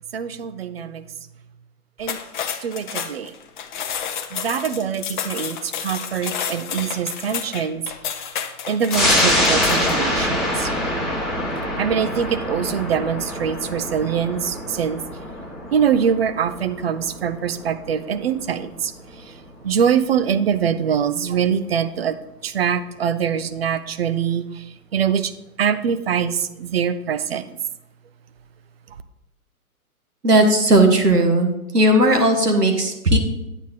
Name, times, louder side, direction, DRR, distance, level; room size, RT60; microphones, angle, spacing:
voice 1, 0.1-1.0 2.0-2.2 2.6-3.3 4.3-7.8 8.7-10.7 11.8-15.0 15.7-19.4 19.6-22.2 22.4-25.3 25.6-27.6, right 7 dB, 40° right, 11 dB, 0.6 m, -23 dB
sound 1, 2.0-10.1, left 8 dB, 30° left, 0.7 m, -30 dB
sound 2, 8.9-19.9 20.3-20.4, left 1 dB, ahead, 1.1 m, -25 dB
voice 2, 30.2-33.2, right 1 dB, 85° right, 4 dB, 1.7 m, -16 dB
9.1 x 8.6 x 3.7 m, 0.94 s
figure-of-eight pair, 120°, 46 cm